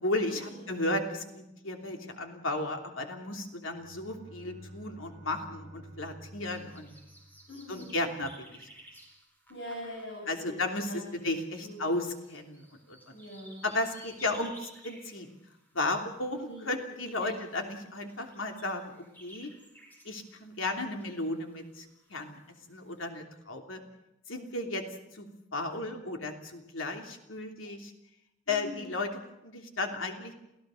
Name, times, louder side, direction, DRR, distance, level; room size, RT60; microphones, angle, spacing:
voice 1, 0.0-7.0 7.7-8.7 10.3-13.2 13.6-15.3 15.7-19.5 20.0-22.4 22.7-23.8 24.3-24.8 25.1-27.9 28.5-30.3, left 2 dB, 90° left, 4 dB, 3.1 m, -34 dB
Bowed string instrument, 3.6-8.2, right 1 dB, 45° right, 5.6 m, -51 dB
sound 1, 6.4-23.1, right 1 dB, 10° left, 4.6 m, -57 dB
voice 2, 7.5-7.9 9.5-11.2 11.6-11.9 13.1-13.6 16.5-16.7 17.2-17.3 28.5-28.9, left 1 dB, 60° left, -1 dB, 6.6 m, -43 dB
28.5 x 16.5 x 6.4 m, 0.93 s
head